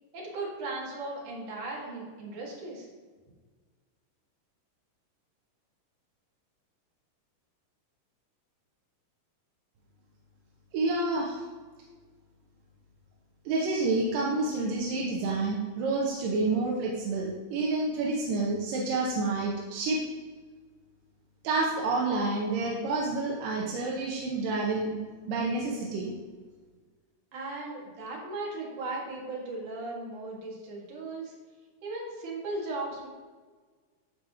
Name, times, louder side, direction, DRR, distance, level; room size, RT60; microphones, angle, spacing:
voice 1, 0.1-2.9 27.3-31.3 31.8-33.1, right 2 dB, 70° right, -3 dB, 3.4 m, -37 dB
voice 2, 10.7-11.4 13.5-20.0 21.4-25.0 25.3-26.1, right 3 dB, 85° right, -3 dB, 2.6 m, -29 dB
14.0 x 4.9 x 3.0 m, 1.4 s
omnidirectional pair, 3.9 m